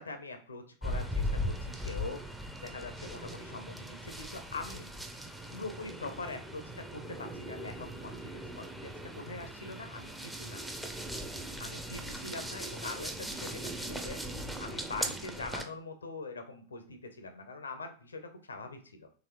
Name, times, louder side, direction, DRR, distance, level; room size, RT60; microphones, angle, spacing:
voice 1, 0.0-2.2 2.6-4.9 5.5-10.6 11.6-14.2 14.6-19.1, left 3 dB, 75° left, 7 dB, 0.5 m, -43 dB
sound 1, 0.8-15.6, equal, 5° right, 0.4 m, -39 dB
4.0 x 2.8 x 2.9 m, 0.40 s
figure-of-eight pair, 90°, 0 cm